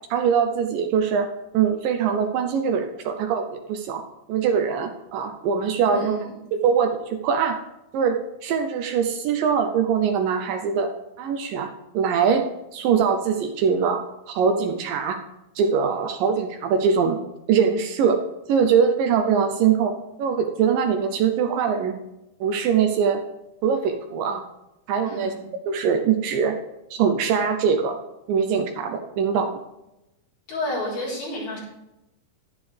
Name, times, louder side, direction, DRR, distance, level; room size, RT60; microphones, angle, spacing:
voice 1, 0.1-4.0 4.3-6.2 6.5-7.6 7.9-10.9 11.2-11.7 11.9-12.5 12.7-15.2 15.6-17.2 17.5-18.2 18.5-19.9 20.2-21.9 22.4-23.2 23.6-24.4 24.9-25.3 25.7-26.6 26.9-28.0 28.3-29.5, right 6 dB, 75° right, 6 dB, 2.2 m, -22 dB
voice 2, 5.9-6.3 25.0-25.4 30.5-31.6, left 1 dB, 70° left, -6 dB, 6.1 m, -30 dB
11.5 x 11.0 x 3.4 m, 0.92 s
omnidirectional pair, 4.4 m